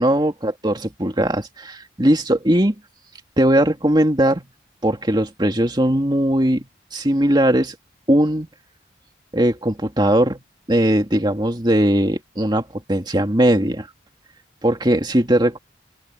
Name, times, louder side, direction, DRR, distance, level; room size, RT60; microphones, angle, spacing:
voice 1, 0.0-2.7 3.4-4.5 4.8-7.8 8.1-8.5 9.3-10.4 10.7-13.9 14.6-15.6, right 1 dB, 25° right, 2.4 m, -19 dB
open air
head